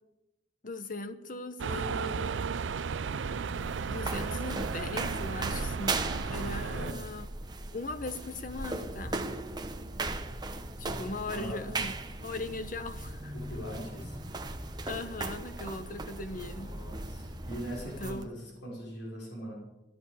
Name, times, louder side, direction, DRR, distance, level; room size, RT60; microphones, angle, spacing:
voice 1, 0.6-2.4 3.9-7.3 7.7-9.2 10.8-12.0 12.2-13.3 14.8-16.7 18.0-18.4, left 2 dB, 45° left, 10 dB, 1.1 m, -39 dB
sound 1, 1.6-6.9, right 5 dB, 85° right, 0.5 m, -34 dB
sound 2, 3.1-18.3, right 2 dB, 25° right, 0.9 m, -38 dB
voice 2, 6.4-6.9 11.3-11.6 13.3-14.2 16.4-19.6, equal, 70° left, -3 dB, 5.0 m, -41 dB
13.5 x 11.0 x 7.2 m, 1.0 s
head